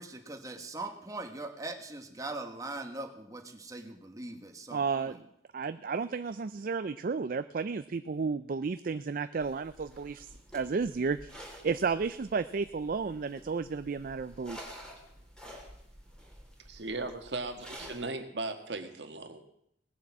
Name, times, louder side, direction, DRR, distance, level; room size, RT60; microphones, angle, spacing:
voice 1, 0.0-5.2, right 2 dB, 20° right, 4 dB, 1.5 m, -41 dB
voice 2, 4.7-5.2 5.5-10.3 10.5-14.7, right 5 dB, 55° right, 12 dB, 0.4 m, -32 dB
sound 1, 9.4-18.1, equal, 5° left, 3.3 m, -50 dB
voice 3, 16.7-19.4, right 3 dB, 80° right, 6 dB, 1.6 m, -37 dB
19.0 x 7.6 x 7.3 m, 0.74 s
head